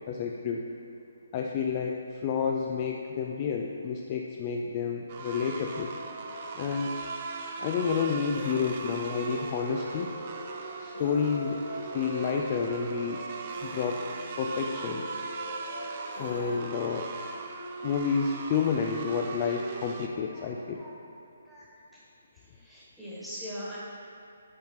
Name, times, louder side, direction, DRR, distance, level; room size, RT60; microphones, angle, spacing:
voice 1, 0.1-0.6 1.3-5.9 6.6-6.9 7.6-10.1 10.8-13.2 13.6-14.0 14.4-15.1 16.2-17.1 17.8-20.9, left 6 dB, 30° left, 1 dB, 0.4 m, -30 dB
sound 1, 5.1-20.1, right 4 dB, 35° right, 0.5 m, -39 dB
sound 2, 5.7-16.6, right 1 dB, 65° left, 1.6 m, -43 dB
voice 2, 20.3-21.0 21.4-22.0 22.3-23.8, equal, ahead, -10 dB, 1.5 m, -42 dB
9.2 x 5.6 x 3.1 m, 2.5 s
figure-of-eight pair, 140°, 0 cm